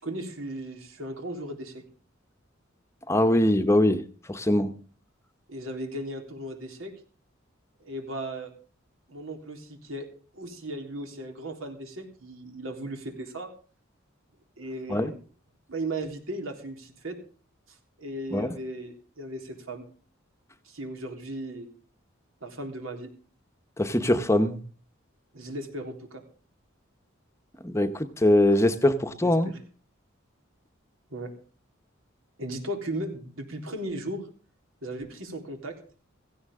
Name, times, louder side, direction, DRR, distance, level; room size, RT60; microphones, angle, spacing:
voice 1, 0.0-1.8 5.5-6.9 7.8-8.5 9.1-10.1 10.3-13.5 14.6-15.1 15.7-17.2 17.7-19.8 20.6-21.7 22.4-23.1 25.3-26.2 29.2-29.6 31.1-31.3 32.4-34.3 34.8-35.8, right 1 dB, 85° right, 3.6 m, -36 dB
voice 2, 3.1-4.0 4.3-4.7 14.9-15.1 18.3-18.5 23.8-24.6 27.6-29.5, left 1 dB, 15° left, 0.9 m, -22 dB
16.5 x 15.5 x 3.7 m
head